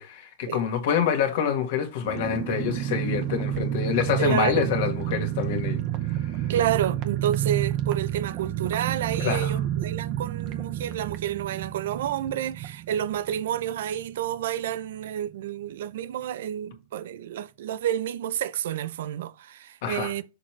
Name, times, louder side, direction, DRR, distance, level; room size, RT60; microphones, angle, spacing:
voice 1, 0.0-5.8 6.1-6.4 9.2-9.5 19.8-20.1, left 8 dB, 50° left, 1.6 m, -27 dB
sound 1, 2.0-14.4 14.7-14.8 15.0-15.3, right 12 dB, 30° right, 0.7 m, -30 dB
voice 2, 4.2-4.7 6.5-20.2, right 10 dB, 65° right, 0.5 m, -29 dB
6.5 x 5.9 x 3.2 m
supercardioid pair, 175°, 0 cm